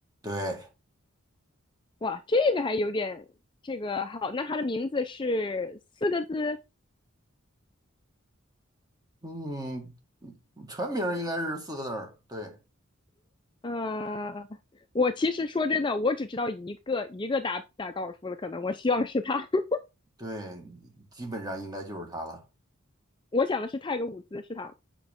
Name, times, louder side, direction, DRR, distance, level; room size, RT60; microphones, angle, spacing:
voice 1, 0.2-0.7 9.2-9.9 10.2-12.6 20.2-22.4, equal, 20° right, 1.8 m, -35 dB
voice 2, 2.0-3.2 3.6-6.6 13.6-14.5 14.9-19.8 23.3-24.7, left 3 dB, 20° left, 0.4 m, -29 dB
8.2 x 5.3 x 3.6 m
head